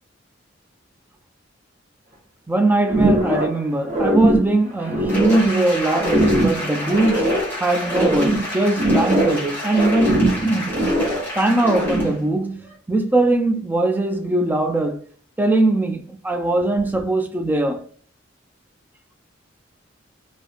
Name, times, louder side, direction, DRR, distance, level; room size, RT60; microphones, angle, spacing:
voice 1, 2.5-10.8 11.4-15.0 15.4-17.8, right 2 dB, 10° right, 0.3 m, -21 dB
sound 1, 2.9-3.6 3.9-5.5 5.9-7.5 7.8-9.5 9.7-11.3 11.6-12.2, right 1 dB, 35° right, 0.7 m, -21 dB
Applause, 5.1-12.2 12.6-12.8, left 1 dB, 10° left, 1.0 m, -31 dB
2.8 x 2.0 x 2.3 m
head